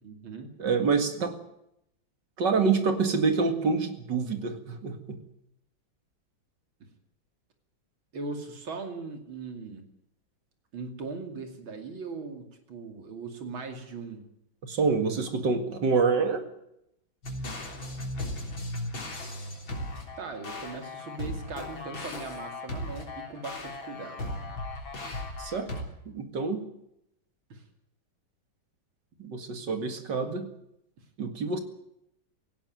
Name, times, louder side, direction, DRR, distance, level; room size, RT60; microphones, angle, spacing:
voice 1, 0.0-0.5 8.1-9.8 10.7-14.2 15.0-15.2 20.2-24.3 27.5-27.6, right 4 dB, 90° right, 5 dB, 3.4 m, -39 dB
voice 2, 0.6-1.4 2.4-5.2 14.6-16.5 25.4-25.7 26.1-26.6 29.2-30.5 31.2-31.6, right 4 dB, 60° right, 8 dB, 2.7 m, -27 dB
sound 1, 17.2-25.8, left 1 dB, 80° left, 4.3 m, -37 dB
18.0 x 16.0 x 9.2 m, 0.79 s
omnidirectional pair, 2.1 m